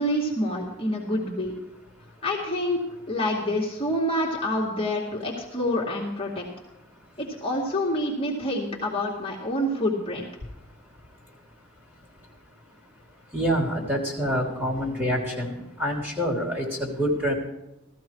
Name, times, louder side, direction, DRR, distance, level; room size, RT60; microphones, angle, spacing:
voice 1, 0.0-1.6 2.2-6.4 7.2-10.3, left 1 dB, 25° left, 2.2 m, -27 dB
voice 2, 13.3-17.3, equal, 10° right, 3.2 m, -27 dB
17.0 x 14.0 x 4.7 m
head